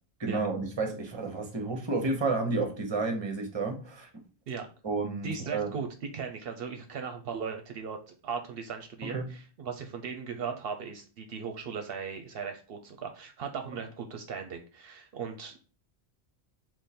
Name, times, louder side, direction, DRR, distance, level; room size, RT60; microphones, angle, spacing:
voice 1, 0.2-4.1 4.8-5.7 9.0-9.3, right 3 dB, 25° right, 0.9 m, -31 dB
voice 2, 5.2-5.9 6.1-8.0 8.2-15.6, right 6 dB, 65° right, 0.8 m, -37 dB
3.7 x 3.1 x 4.1 m
omnidirectional pair, 1.1 m